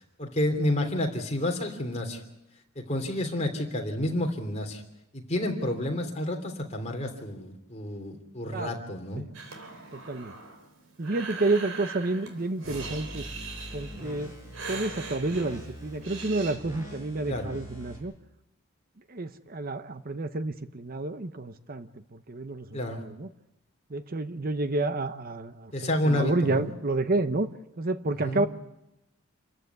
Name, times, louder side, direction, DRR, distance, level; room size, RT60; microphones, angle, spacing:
voice 1, 0.2-2.2 2.7-4.8 5.1-9.2 17.3-17.6 22.7-23.0 25.7-26.7 28.2-28.4, left 1 dB, 30° left, 2 dB, 3.2 m, -30 dB
Breathing, 9.3-16.6, right 4 dB, 80° right, 3.9 m, -41 dB
voice 2, 9.9-10.3 11.0-13.3 13.7-14.3 14.7-18.1 19.1-23.3 23.9-25.7 26.0-27.5 27.8-28.5, right 2 dB, 45° right, 11 dB, 0.8 m, -30 dB
sound 1, 12.6-18.0, equal, 15° right, 6.4 m, -43 dB
27.5 x 14.5 x 9.5 m, 0.90 s
head